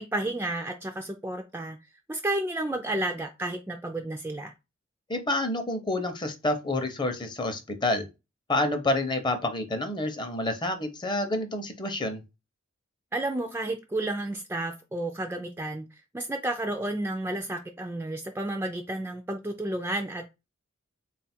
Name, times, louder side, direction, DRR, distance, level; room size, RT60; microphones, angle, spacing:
voice 1, 0.0-1.8 2.1-4.5 13.1-15.9 16.1-20.3, right 1 dB, 10° right, 0.3 m, -31 dB
voice 2, 5.1-8.1 8.5-12.2, left 2 dB, 25° left, 0.6 m, -28 dB
3.7 x 2.4 x 4.2 m
head